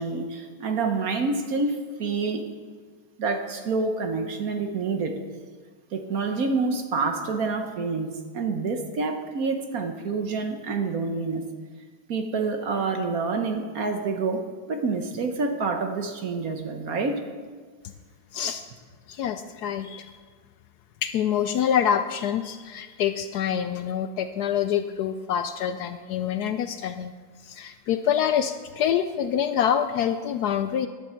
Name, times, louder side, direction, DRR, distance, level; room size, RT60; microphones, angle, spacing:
voice 1, 0.0-2.4 3.2-5.1 5.9-11.4 12.1-17.2, right 4 dB, 55° right, 5 dB, 1.3 m, -27 dB
voice 2, 18.3-18.7 19.1-20.2 21.0-27.1 27.4-30.9, left 9 dB, 70° left, 9 dB, 1.0 m, -26 dB
14.0 x 11.0 x 4.5 m, 1.5 s
omnidirectional pair, 2.0 m